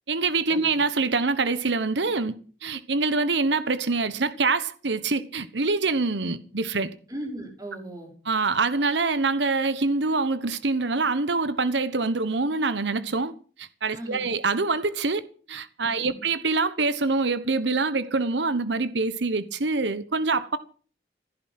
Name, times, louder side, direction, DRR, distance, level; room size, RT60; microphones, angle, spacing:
voice 1, 0.1-2.3 2.6-6.9 8.3-13.3 13.6-15.2 15.5-20.6, right 3 dB, 85° right, 1.2 m, -25 dB
voice 2, 7.1-8.1 13.9-14.3 16.0-16.1, right 1 dB, 20° right, 5.4 m, -37 dB
16.0 x 11.0 x 7.7 m
head